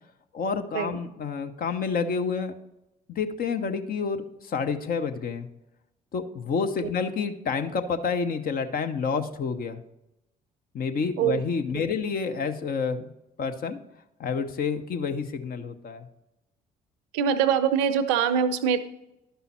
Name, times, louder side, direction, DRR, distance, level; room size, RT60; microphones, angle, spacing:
voice 1, 0.3-2.5 3.1-5.5 6.1-9.8 10.7-13.1 13.4-13.8 14.2-16.1, left 5 dB, 45° left, 7 dB, 0.9 m, -29 dB
voice 2, 17.1-18.9, right 8 dB, 65° right, 13 dB, 0.7 m, -23 dB
11.5 x 5.5 x 4.3 m, 0.91 s
figure-of-eight pair, 50°, 21 cm